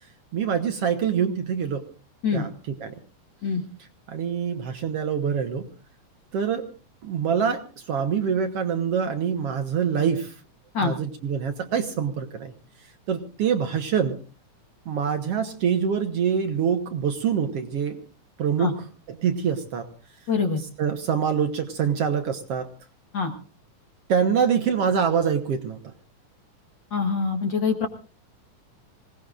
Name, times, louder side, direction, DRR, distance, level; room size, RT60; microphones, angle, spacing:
voice 1, 0.3-1.8 2.3-3.0 4.1-5.7 6.3-6.7 7.0-10.4 10.8-12.5 13.1-14.2 14.9-18.0 18.4-19.9 20.8-22.7 24.1-25.8, right 7 dB, 60° right, 6 dB, 1.9 m, -25 dB
voice 2, 20.3-20.6 23.1-23.3 26.9-27.9, left 5 dB, 45° left, 4 dB, 1.7 m, -24 dB
26.0 x 18.0 x 2.5 m, 0.38 s
omnidirectional pair, 3.5 m